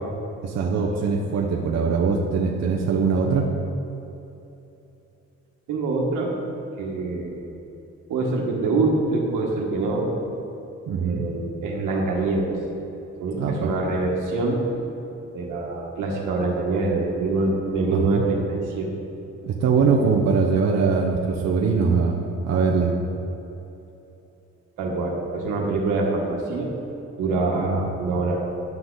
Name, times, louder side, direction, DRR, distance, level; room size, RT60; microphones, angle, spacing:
voice 1, 0.4-3.4 10.9-11.2 13.4-13.7 17.9-18.2 19.4-22.9 27.5-27.9, right 5 dB, 60° right, -1 dB, 0.9 m, -22 dB
voice 2, 5.7-6.3 6.8-7.4 8.1-10.1 11.0-12.5 13.2-14.6 15.3-19.0 19.8-20.0 24.8-26.7 27.2-28.4, right 3 dB, 90° right, -1 dB, 1.5 m, -25 dB
10.5 x 6.0 x 3.9 m, 2.9 s
cardioid pair, 90°, 30 cm